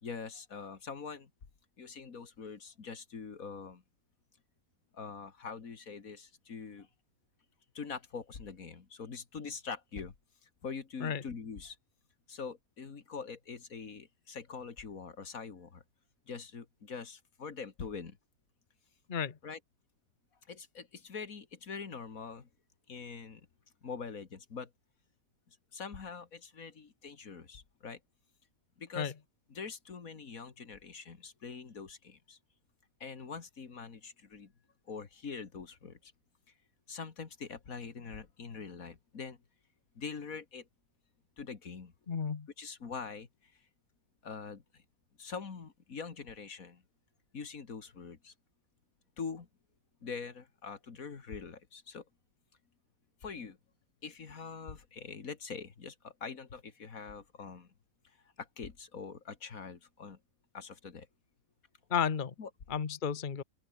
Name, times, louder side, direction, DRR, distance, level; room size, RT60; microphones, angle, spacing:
voice 1, 0.0-1.3 1.8-3.8 4.9-6.9 7.7-10.1 10.4-11.8 12.3-15.8 16.3-18.2 19.4-19.6 20.5-22.5 22.9-23.5 23.8-24.7 25.5-28.0 28.8-29.1 29.5-32.4 33.0-34.5 34.9-36.1 36.9-39.4 40.0-40.7 41.4-41.9 42.6-43.5 44.2-44.8 45.2-46.8 47.3-48.3 49.2-49.5 50.0-52.0 53.2-53.6 54.0-57.7 58.4-60.2 60.5-61.1 62.4-62.5, left 5 dB, 80° left, 2.4 m, -44 dB
voice 2, 42.1-42.5 61.9-62.3 62.7-63.4, left 7 dB, 40° left, 1.2 m, -32 dB
open air
omnidirectional pair, 1.4 m